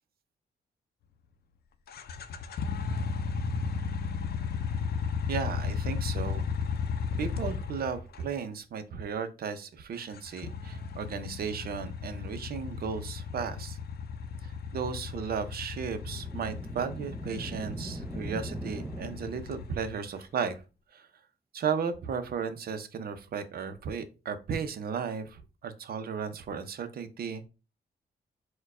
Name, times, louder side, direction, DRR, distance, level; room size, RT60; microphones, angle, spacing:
sounds of triumph bonneville speedmaster motorcycle stereo, 1.9-8.3 10.0-20.1, left 5 dB, 70° left, 0.5 m, -35 dB
voice 1, 5.3-6.5 7.2-13.8 14.4-20.6 20.9-21.1 21.5-27.5, right 6 dB, 65° right, 9 dB, 0.7 m, -35 dB
sound 1, 15.9-19.7, right 1 dB, 10° right, 0.6 m, -41 dB
4.4 x 2.3 x 4.7 m, 0.31 s
cardioid pair, 95°, 17 cm